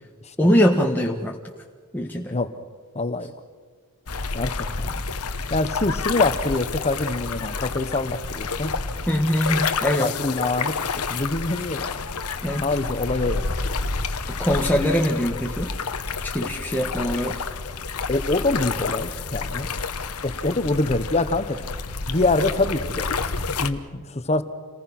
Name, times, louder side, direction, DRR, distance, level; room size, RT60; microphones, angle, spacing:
voice 1, 0.4-1.4 1.9-2.3 9.1-10.1 12.4-12.7 14.3-15.7 16.2-17.4, equal, 10° left, -1 dB, 1.4 m, -22 dB
voice 2, 2.9-3.3 4.3-5.0 5.5-8.8 10.0-12.1 12.6-13.5 18.1-19.7 20.2-21.6 22.1-23.1 23.5-24.4, left 2 dB, 30° left, 11 dB, 1.2 m, -25 dB
sound 1, 4.1-23.7, left 4 dB, 85° left, 1.2 m, -29 dB
28.5 x 19.5 x 6.1 m, 1.5 s
head